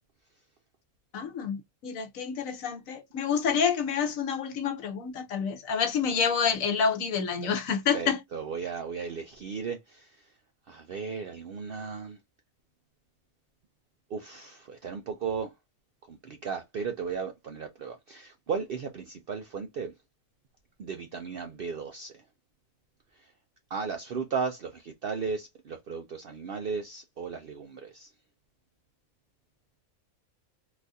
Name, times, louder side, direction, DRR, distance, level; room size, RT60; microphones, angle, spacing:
voice 1, 1.1-8.2, left 6 dB, 70° left, 1.2 m, -28 dB
voice 2, 7.9-10.3 10.7-12.2 14.1-15.5 16.1-19.9 20.8-22.2 23.2-23.3 23.7-28.1, right 5 dB, 65° right, 0.5 m, -35 dB
3.9 x 2.4 x 2.6 m
omnidirectional pair, 1.5 m